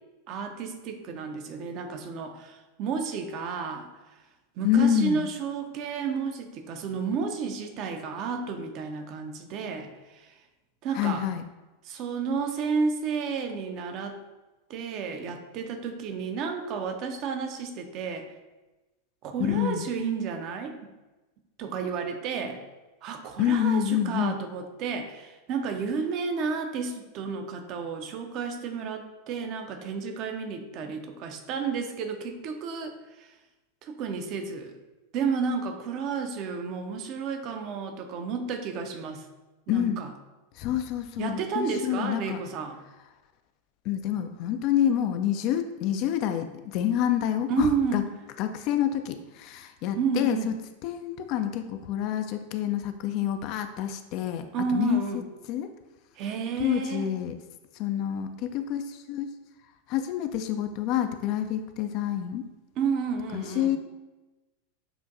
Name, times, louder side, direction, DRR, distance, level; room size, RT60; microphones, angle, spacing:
voice 1, 0.3-3.9 4.6-10.3 10.8-11.3 11.8-14.2 14.7-18.3 19.2-20.9 21.6-22.6 23.0-33.3 33.8-34.7 35.1-39.3 39.7-40.1 41.2-42.8 47.5-48.0 50.0-50.5 54.5-55.2 56.2-57.1 62.8-63.7, right 5 dB, 40° right, 5 dB, 0.5 m, -31 dB
voice 2, 4.6-5.3 10.9-11.4 19.4-19.9 23.4-24.4 39.7-40.0 40.5-42.4 43.9-48.0 48.4-50.6 50.8-55.7 56.6-57.4 57.7-59.3 59.9-62.5 63.3-63.8, left 10 dB, 45° left, 8 dB, 0.3 m, -28 dB
6.9 x 2.6 x 2.6 m, 1.1 s
figure-of-eight pair, 90°, 0 cm